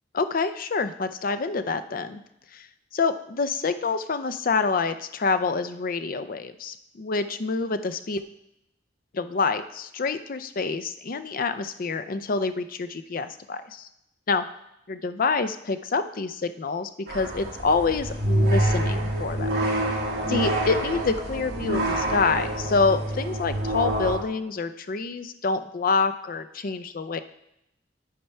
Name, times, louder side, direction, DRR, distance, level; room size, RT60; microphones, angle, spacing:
voice 1, 0.1-2.2 2.5-2.7 2.9-8.2 9.1-13.9 14.3-14.4 14.9-19.5 20.3-27.2, left 4 dB, 50° left, 10 dB, 0.5 m, -27 dB
sound 1, 17.1-24.2, right 1 dB, 65° right, 2.0 m, -26 dB
10.0 x 4.5 x 5.5 m, 0.82 s
head